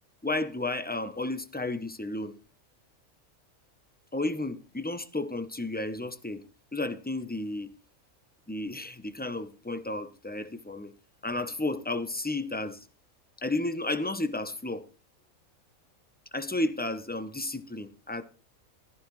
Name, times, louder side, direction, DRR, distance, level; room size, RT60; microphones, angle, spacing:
voice 1, 0.2-2.3 4.1-6.4 6.7-7.7 8.5-10.9 11.2-12.8 13.4-14.9 16.3-18.2, left 2 dB, 10° left, 0.5 m, -32 dB
14.5 x 13.5 x 3.2 m
omnidirectional pair, 1.5 m